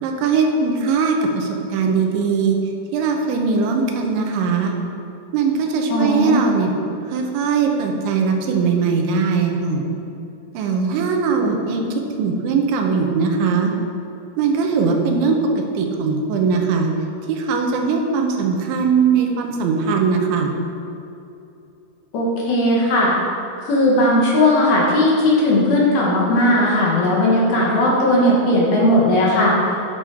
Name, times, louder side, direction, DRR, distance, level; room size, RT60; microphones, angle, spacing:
voice 1, 0.0-2.6 2.9-4.7 5.3-6.7 7.1-9.9 10.5-13.7 14.4-16.9 17.3-20.5, right 5 dB, 85° right, 2 dB, 3.2 m, -20 dB
voice 2, 5.9-6.4 22.1-23.1 23.6-29.5, left 1 dB, 65° left, -4 dB, 3.2 m, -17 dB
9.8 x 7.4 x 4.9 m, 2.8 s
omnidirectional pair, 5.3 m